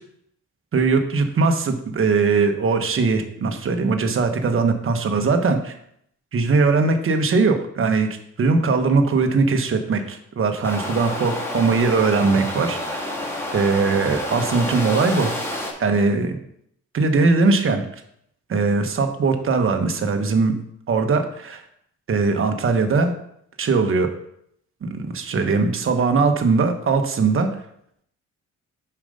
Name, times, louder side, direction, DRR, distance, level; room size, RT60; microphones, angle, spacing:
voice 1, 0.7-5.7 6.3-8.1 8.4-13.1 13.5-15.3 15.8-16.4 16.9-17.8 18.5-20.5 20.9-21.6 22.1-23.1 23.6-24.1 24.8-27.5, right 4 dB, 45° right, 5 dB, 1.3 m, -20 dB
sound 1, 10.6-15.7, left 1 dB, 10° left, 2.1 m, -29 dB
7.2 x 5.4 x 5.2 m, 0.72 s
cardioid pair, 90°, 30 cm